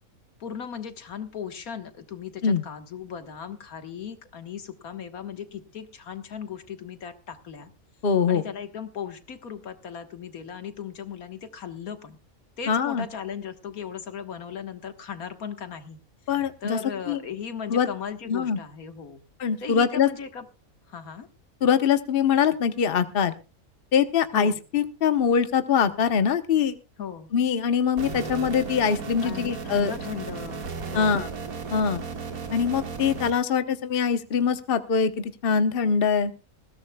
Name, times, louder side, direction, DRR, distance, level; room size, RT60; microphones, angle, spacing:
voice 1, 0.4-7.7 8.3-12.2 12.6-16.0 16.6-19.2 19.6-20.5 20.9-21.3 24.3-24.6 27.0-27.3 29.2-31.2, left 7 dB, 85° left, 8 dB, 1.9 m, -37 dB
voice 2, 8.0-8.4 12.7-13.0 16.3-16.8 17.1-17.2 17.7-17.9 18.3-18.6 19.4-20.1 21.6-23.3 23.9-26.8 27.3-29.9 30.9-31.3 31.7-32.0 32.5-36.3, left 7 dB, 45° left, 9 dB, 1.1 m, -23 dB
sound 1, 28.0-33.3, right 5 dB, 80° right, 2.2 m, -35 dB
20.5 x 16.0 x 2.3 m, 0.31 s
omnidirectional pair, 1.5 m